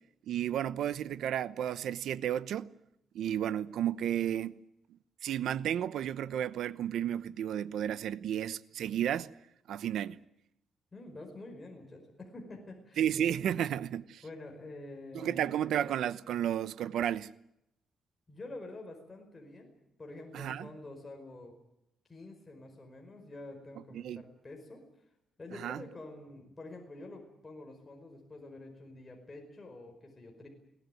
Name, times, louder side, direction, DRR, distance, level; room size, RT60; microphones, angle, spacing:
voice 1, 0.3-2.7 3.1-4.5 5.2-9.3 9.7-10.2 13.0-14.2 15.1-17.3 20.3-20.7 23.9-24.2 25.6-25.8, right 10 dB, 80° right, 0.9 m, -32 dB
voice 2, 10.9-13.4 14.2-15.6 18.3-19.7 20.0-21.6 22.1-24.8 25.4-30.5, left 2 dB, 20° left, 5.1 m, -47 dB
22.5 x 18.0 x 9.3 m
cardioid pair, 125°, 0 cm